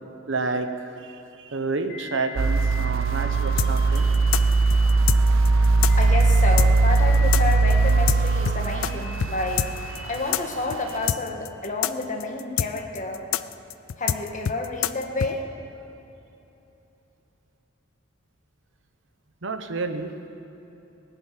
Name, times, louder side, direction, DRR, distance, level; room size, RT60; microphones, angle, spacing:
voice 1, 0.3-4.1 19.4-20.1, right 3 dB, 65° right, 7 dB, 0.9 m, -30 dB
sound 1, 1.9-10.9, left 3 dB, 60° left, 4.5 m, -39 dB
sound 2, 2.4-10.6 11.0-11.1, right 3 dB, 85° right, 0.5 m, -20 dB
sound 3, 3.6-8.9 9.2-9.3 9.6-15.3, left 9 dB, 75° left, 0.4 m, -26 dB
voice 2, 5.9-9.7 10.1-13.3 14.0-15.5, left 2 dB, 40° left, 2 dB, 1.6 m, -30 dB
18.0 x 9.5 x 7.5 m, 3.0 s
head